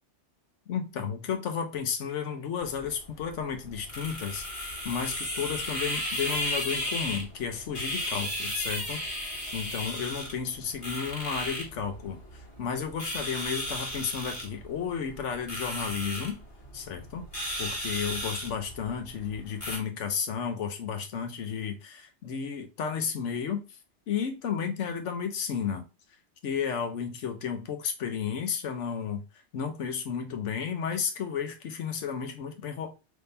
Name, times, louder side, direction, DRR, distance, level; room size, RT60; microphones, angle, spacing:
voice 1, 0.7-9.2 9.5-16.4 16.7-17.2 17.6-23.8 24.1-25.8 26.4-29.2 29.5-32.9, left 7 dB, 90° left, 1.1 m, -33 dB
sound 1, 2.6-19.8, left 1 dB, 25° left, 1.4 m, -35 dB
3.6 x 3.0 x 2.6 m
omnidirectional pair, 1.2 m